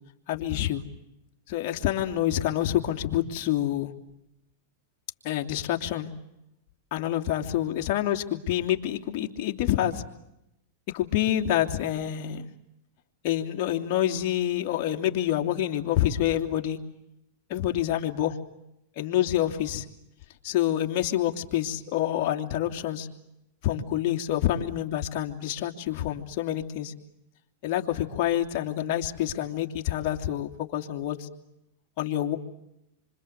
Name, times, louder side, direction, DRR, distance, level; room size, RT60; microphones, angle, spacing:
voice 1, 0.3-0.8 1.5-3.9 5.2-6.1 6.9-10.0 10.9-12.5 13.2-16.8 17.5-18.4 19.0-19.8 20.4-23.1 23.6-26.9 27.6-31.3 32.0-32.4, left 12 dB, 50° left, 3 dB, 2.9 m, -27 dB
27.5 x 26.0 x 8.2 m, 0.84 s
hypercardioid pair, 130°, 0 cm